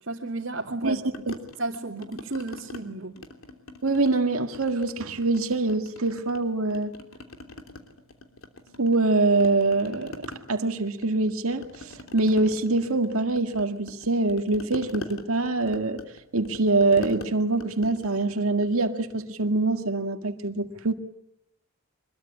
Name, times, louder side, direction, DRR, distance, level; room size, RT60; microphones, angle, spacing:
voice 1, 0.0-1.0 1.6-3.1, right 2 dB, 60° right, 2.5 m, -32 dB
sound 1, 1.1-2.8 3.2-4.2 4.5-6.4 6.7-9.1 9.4-19.2, left 2 dB, 70° left, 3.2 m, -43 dB
voice 2, 3.8-6.9 8.8-16.0 16.3-20.9, right 3 dB, 80° right, 1.9 m, -24 dB
24.5 x 22.0 x 9.9 m
head